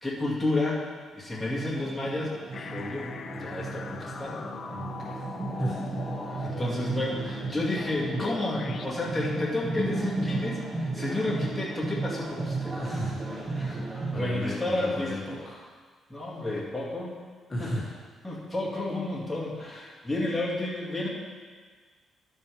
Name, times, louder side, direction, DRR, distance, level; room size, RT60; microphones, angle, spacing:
voice 1, 0.0-0.8 1.1-4.5 6.3-12.8 13.5-15.2 16.1-17.2 17.6-17.8 18.2-21.1, left 2 dB, 5° left, -6 dB, 2.3 m, -31 dB
sound 1, 1.3-14.2, right 2 dB, 20° right, 1.5 m, -34 dB
sound 2, 2.5-8.9, left 5 dB, 50° left, 0.6 m, -40 dB
voice 2, 4.7-5.2 5.6-5.8 12.7-13.2 14.1-15.6 17.5-17.8, left 1 dB, 25° left, -5 dB, 2.0 m, -34 dB
11.0 x 8.5 x 3.6 m, 1.5 s
cardioid pair, 90°, 0 cm